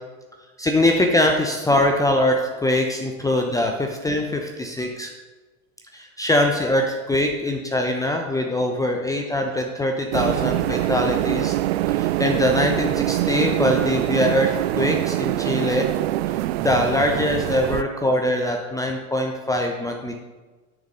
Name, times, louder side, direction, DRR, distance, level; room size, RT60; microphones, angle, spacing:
voice 1, 0.6-5.1 5.9-11.5 11.9-15.9 16.6-20.1, left 1 dB, 10° left, 2 dB, 0.8 m, -22 dB
sound 1, 10.1-17.8, right 15 dB, 45° right, 0.4 m, -24 dB
10.5 x 6.6 x 5.3 m, 1.3 s
figure-of-eight pair, 85°, 43 cm